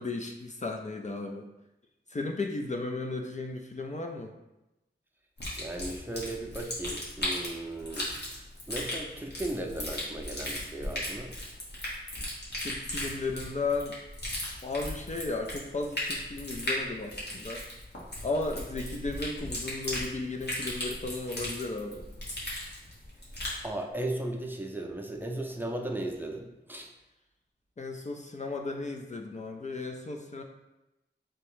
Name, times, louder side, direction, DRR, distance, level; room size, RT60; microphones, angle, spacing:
voice 1, 0.0-1.5 2.1-4.3 12.6-14.0 14.6-17.6 18.2-22.1 27.8-30.4, left 3 dB, 40° left, 3 dB, 0.4 m, -35 dB
sound 1, 5.4-23.6, left 1 dB, 65° left, 1.4 m, -37 dB
voice 2, 5.6-8.1 8.7-11.3 23.6-26.9, right 1 dB, 10° right, 1 dB, 0.6 m, -36 dB
3.5 x 3.0 x 4.8 m, 0.96 s
wide cardioid pair, 80°, 18 cm